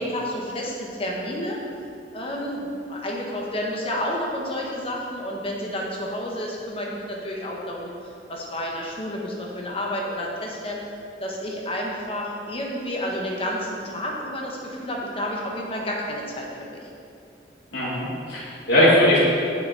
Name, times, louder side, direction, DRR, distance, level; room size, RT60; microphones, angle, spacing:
voice 1, 0.0-1.6 2.1-10.8 11.2-16.9, equal, 30° left, -2 dB, 1.4 m, -30 dB
voice 2, 17.7-19.2, left 1 dB, 80° left, -11 dB, 2.0 m, -19 dB
10.0 x 6.8 x 4.2 m, 2.5 s
head